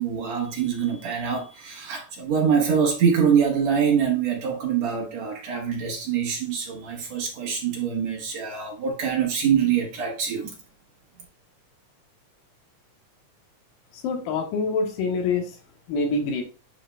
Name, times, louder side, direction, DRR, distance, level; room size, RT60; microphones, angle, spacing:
voice 1, 0.0-10.5, right 7 dB, 60° right, 2.2 m, -24 dB
voice 2, 14.0-15.5 15.9-16.4, left 4 dB, 85° left, 2.8 m, -25 dB
9.7 x 4.5 x 2.2 m
omnidirectional pair, 3.9 m